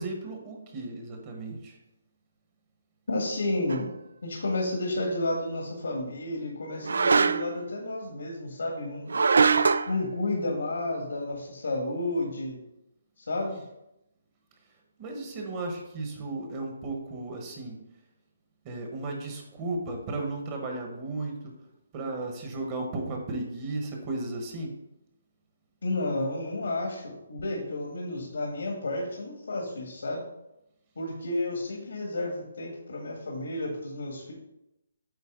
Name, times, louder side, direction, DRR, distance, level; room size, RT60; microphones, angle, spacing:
voice 1, 0.0-1.8 15.0-17.8 18.6-21.5 21.9-24.7, right 2 dB, 25° right, 2 dB, 1.1 m, -35 dB
voice 2, 3.1-3.9 4.2-9.1 9.9-12.6 13.3-13.6 25.8-30.2 31.0-34.3, left 2 dB, 85° left, 0 dB, 1.7 m, -31 dB
sound 1, 3.7-3.9 6.8-7.6 9.1-10.0, right 4 dB, 75° right, 0.3 m, -22 dB
8.3 x 4.0 x 3.8 m, 0.87 s
hypercardioid pair, 165°, 0 cm